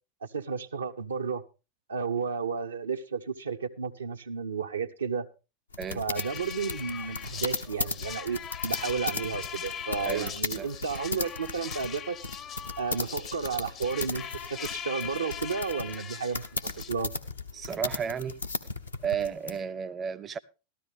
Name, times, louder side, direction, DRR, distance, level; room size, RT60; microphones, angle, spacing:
voice 1, 0.2-1.4 1.9-5.2 5.9-12.2 12.8-14.2 14.5-16.5 16.9-17.1, right 5 dB, 85° right, 0.6 m, -32 dB
sound 1, 5.7-19.6, left 3 dB, 90° left, 0.9 m, -36 dB
sound 2, 6.2-16.9, left 8 dB, 35° left, 0.6 m, -40 dB
voice 2, 10.1-10.7 17.5-18.4 19.0-20.4, right 7 dB, 25° right, 0.5 m, -33 dB
13.5 x 13.0 x 3.4 m
figure-of-eight pair, 90°, 0 cm